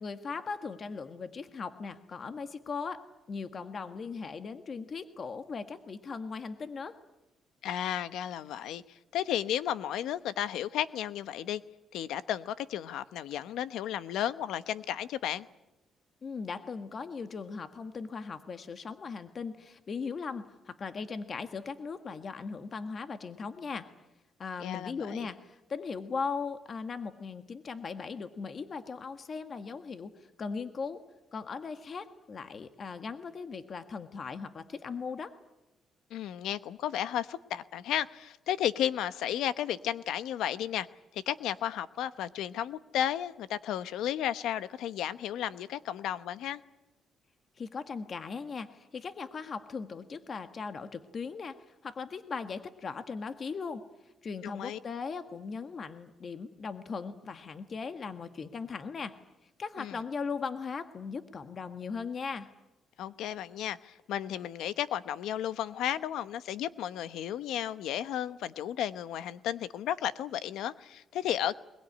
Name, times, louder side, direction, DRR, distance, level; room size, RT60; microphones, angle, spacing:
voice 1, 0.0-6.9 16.2-23.9 24.4-30.1 30.4-31.0 31.3-35.3 47.6-51.6 51.8-53.8 54.2-59.2 59.6-62.5, left 5 dB, 45° left, 9 dB, 1.6 m, -38 dB
voice 2, 7.6-11.6 11.9-15.5 24.6-25.3 36.1-40.9 41.1-46.6 54.4-54.8 59.8-60.0 63.0-71.6, left 11 dB, 85° left, 14 dB, 1.0 m, -33 dB
22.0 x 21.5 x 9.8 m, 0.97 s
cardioid pair, 90°, 0 cm